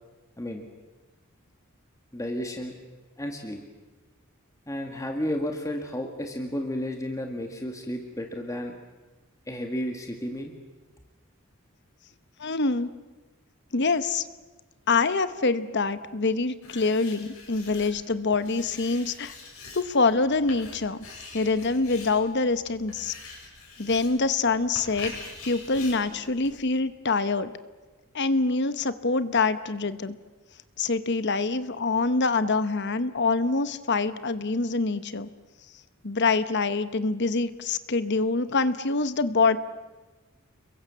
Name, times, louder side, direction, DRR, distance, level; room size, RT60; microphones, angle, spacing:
voice 1, 0.4-0.7 2.1-2.8 3.2-3.6 4.7-8.7 9.5-10.5, equal, 15° left, 3 dB, 1.9 m, -32 dB
voice 2, 12.4-12.9 13.7-14.2 14.9-19.3 19.7-21.0 21.3-23.1 23.8-25.1 25.4-27.5 28.1-30.2 30.8-35.3 36.0-39.6, left 3 dB, 55° left, 13 dB, 1.1 m, -25 dB
Writing, 16.6-26.8, left 3 dB, 85° left, 7.9 m, -45 dB
30.0 x 22.5 x 7.0 m, 1.2 s
head